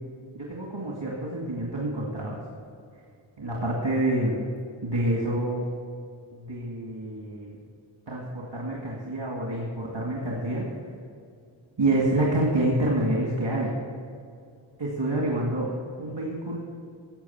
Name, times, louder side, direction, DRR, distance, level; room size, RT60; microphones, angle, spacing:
voice 1, 0.3-2.4 3.4-4.4 4.8-5.6 6.3-7.6 8.1-10.7 11.8-13.7 14.8-15.7 16.0-16.6, right 1 dB, 60° right, -3 dB, 2.2 m, -27 dB
13.0 x 7.9 x 7.1 m, 2.3 s
wide cardioid pair, 40°, 48 cm